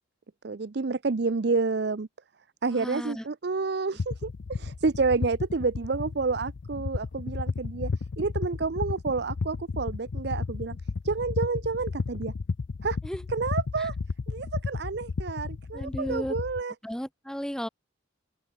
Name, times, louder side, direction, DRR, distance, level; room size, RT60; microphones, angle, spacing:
voice 1, 0.4-2.1 2.6-7.9 8.2-10.8 11.0-12.3 12.8-13.0 13.3-13.9 14.3-16.7, right 4 dB, 55° right, 0.6 m, -29 dB
voice 2, 2.7-3.2 13.0-13.2 13.8-13.9 15.7-16.4 16.8-17.7, equal, 5° left, 1.2 m, -34 dB
sound 1, 4.0-16.6, left 4 dB, 65° left, 0.5 m, -33 dB
open air
head